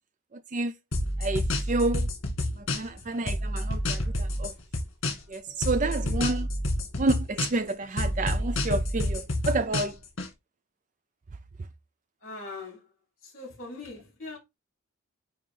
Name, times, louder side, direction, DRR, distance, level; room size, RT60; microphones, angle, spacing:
voice 1, 0.3-0.7 1.2-2.1 2.6-4.5 5.3-6.5 7.0-10.0, right 2 dB, 35° right, 0.4 m, -29 dB
sound 1, 0.9-3.0 3.3-5.4 5.6-7.7 8.0-10.3, left 1 dB, 60° left, 2.1 m, -28 dB
voice 2, 12.2-12.8 13.3-14.4, left 3 dB, 40° left, 4.2 m, -41 dB
9.1 x 3.1 x 3.8 m
head